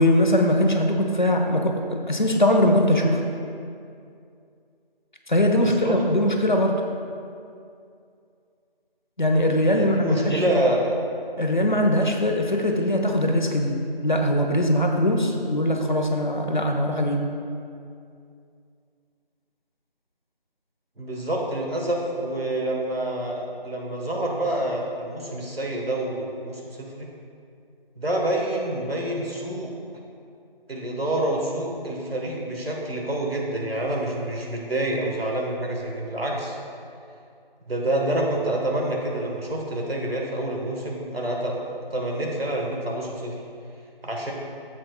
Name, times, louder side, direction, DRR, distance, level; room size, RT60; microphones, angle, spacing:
voice 1, 0.0-3.2 5.3-6.8 9.2-10.6 11.4-13.8 14.0-17.3, left 1 dB, 50° left, 2 dB, 1.0 m, -21 dB
voice 2, 5.5-5.9 9.7-11.0 21.0-27.1 28.0-29.7 30.7-36.6 37.7-41.6 41.9-43.3 44.0-44.3, right 1 dB, 85° right, -1 dB, 1.6 m, -27 dB
12.0 x 7.6 x 2.4 m, 2.4 s
figure-of-eight pair, 175°, 29 cm